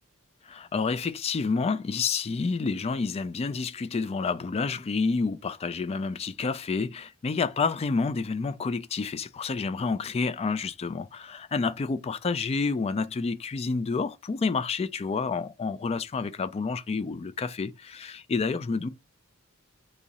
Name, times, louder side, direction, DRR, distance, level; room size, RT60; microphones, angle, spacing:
voice 1, 0.4-18.9, left 4 dB, 30° left, 0.3 m, -29 dB
3.6 x 2.0 x 4.0 m
head